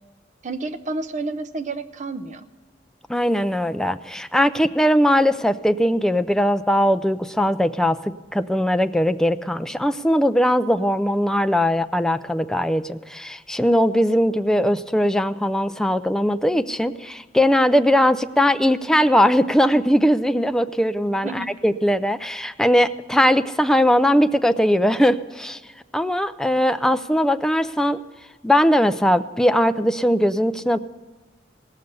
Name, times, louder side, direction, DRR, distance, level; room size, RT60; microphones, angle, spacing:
voice 1, 0.4-2.5 21.2-21.5, right 3 dB, 45° right, 10 dB, 0.6 m, -30 dB
voice 2, 3.1-8.0 8.3-25.6 25.9-28.0 28.4-30.8, equal, 5° left, 10 dB, 0.3 m, -20 dB
17.5 x 6.6 x 6.9 m, 1.2 s
head